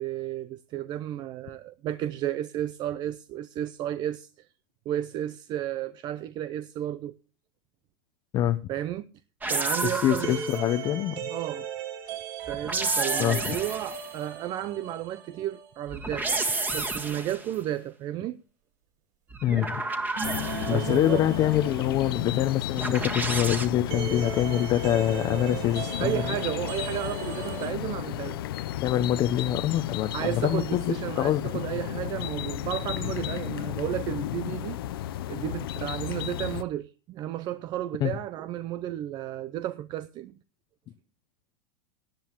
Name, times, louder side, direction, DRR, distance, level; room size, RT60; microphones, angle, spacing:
voice 1, 0.0-4.5 4.9-7.2 8.7-9.1 9.5-10.4 11.3-11.7 12.5-16.4 16.7-18.4 20.7-21.2 26.0-28.4 30.1-34.8 35.3-40.4, right 12 dB, 35° right, 0.6 m, -33 dB
sound 1, 9.4-10.7 12.4-14.1 15.9-17.5 19.3-20.9 22.8-23.7, right 3 dB, 15° right, 1.8 m, -30 dB
voice 2, 9.8-11.3 13.2-13.6 19.4-19.8 20.7-26.2 28.8-31.4 38.0-38.2, left 12 dB, 35° left, 0.8 m, -25 dB
sound 2, 10.2-16.2 16.4-16.5 20.2-27.7, right 6 dB, 65° right, 7.1 m, -38 dB
sound 3, 20.2-36.6, left 12 dB, 75° left, 0.7 m, -33 dB
18.0 x 10.5 x 3.0 m
supercardioid pair, 125°, 12 cm